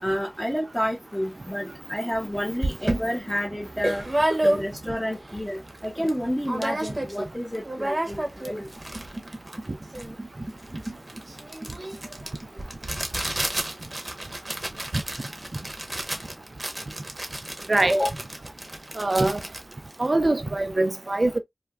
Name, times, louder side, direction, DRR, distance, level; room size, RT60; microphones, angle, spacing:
voice 1, 0.0-4.0 4.4-8.7 17.9-18.1, equal, 15° left, 0.8 m, -29 dB
sound 1, 2.1-2.2 2.6-5.0 5.4-5.5 5.7-6.2 6.5-7.3 7.5-20.6, right 1 dB, 35° right, 0.8 m, -30 dB
voice 2, 19.0-19.4 20.0-21.4, right 2 dB, 60° right, 0.4 m, -23 dB
3.3 x 2.2 x 2.2 m
wide cardioid pair, 50°, 0 cm